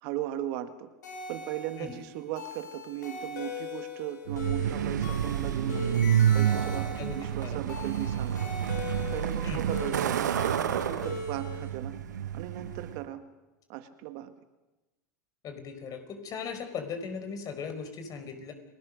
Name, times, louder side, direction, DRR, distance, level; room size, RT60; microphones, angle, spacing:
voice 1, 0.0-0.9 1.3-6.0 6.3-8.3 9.1-11.9 12.3-13.2 13.7-14.3, right 13 dB, 60° right, 9 dB, 1.8 m, -37 dB
sound 1, 1.0-11.7, left 3 dB, 85° left, 5.7 m, -40 dB
Truck, 4.3-13.0, right 9 dB, 85° right, 1.3 m, -29 dB
voice 2, 7.0-7.6 9.4-9.6 15.4-18.5, left 6 dB, 40° left, 7 dB, 5.0 m, -38 dB
30.0 x 19.5 x 6.5 m, 1.1 s
hypercardioid pair, 90°, 9 cm